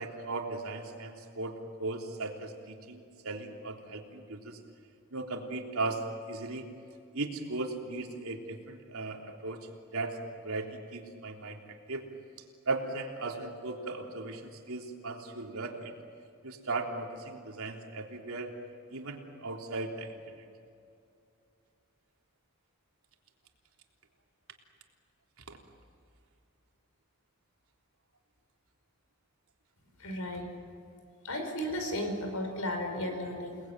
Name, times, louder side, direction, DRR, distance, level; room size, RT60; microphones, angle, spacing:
voice 1, 0.0-4.6 5.1-6.7 7.1-12.0 12.7-15.9 16.4-18.5 18.9-20.5 25.5-25.6, right 3 dB, 85° right, 2 dB, 3.6 m, -37 dB
voice 2, 30.0-30.5 31.2-33.6, left 1 dB, 85° left, 5 dB, 5.4 m, -34 dB
29.5 x 20.0 x 9.3 m, 2.5 s
head